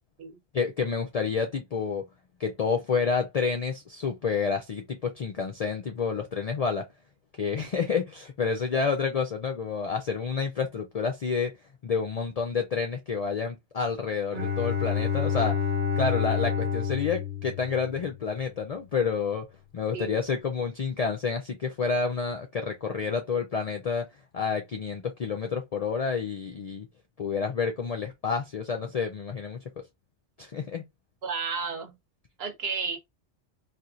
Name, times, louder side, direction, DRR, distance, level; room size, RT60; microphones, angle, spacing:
voice 1, 0.5-2.1 2.4-6.8 7.4-11.5 11.8-15.6 16.0-19.5 19.7-24.1 24.3-26.9 27.2-29.6 30.4-30.8, left 5 dB, 60° left, 0.4 m, -29 dB
Bowed string instrument, 14.3-18.3, left 7 dB, 85° right, 1.3 m, -28 dB
voice 2, 31.2-31.9 32.4-33.0, right 5 dB, 65° right, 1.1 m, -32 dB
4.1 x 2.4 x 2.4 m
omnidirectional pair, 1.1 m